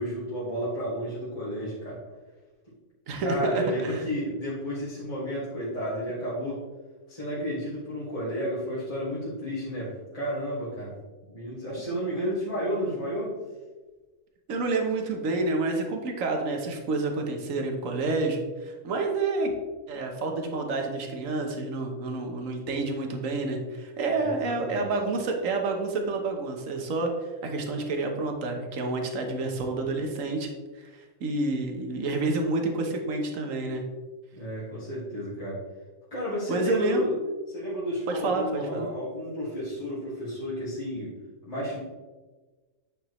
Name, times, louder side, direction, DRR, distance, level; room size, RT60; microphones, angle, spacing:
voice 1, 0.0-2.0 3.2-6.6 7.1-10.9 11.3-13.3 24.1-24.9 34.3-35.6 36.1-37.1 37.5-41.1 41.5-41.8, equal, 25° left, -10 dB, 2.1 m, -32 dB
voice 2, 3.1-4.0 14.5-19.5 19.9-27.1 27.4-30.5 30.8-30.9 31.2-33.8 36.5-37.1 38.1-38.9, right 3 dB, 65° right, 3 dB, 1.4 m, -29 dB
8.9 x 5.3 x 3.1 m, 1.3 s
omnidirectional pair, 1.5 m